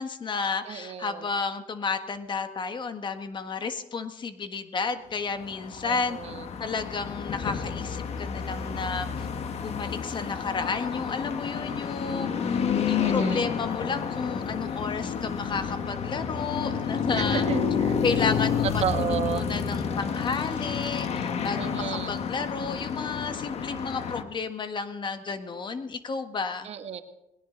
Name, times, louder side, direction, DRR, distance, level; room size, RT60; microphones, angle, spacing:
voice 1, 0.0-6.2 6.6-9.3 9.6-17.5 18.0-26.7, left 5 dB, 40° left, 9 dB, 1.5 m, -32 dB
voice 2, 0.6-1.2 5.8-6.4 13.0-13.5 17.1-17.9 18.8-19.5 21.6-22.1 26.6-27.0, right 8 dB, 60° right, 7 dB, 1.5 m, -32 dB
sound 1, 5.4-24.2, left 6 dB, 60° left, 1.6 m, -30 dB
20.0 x 17.5 x 3.9 m, 0.87 s
cardioid pair, 105°, 12 cm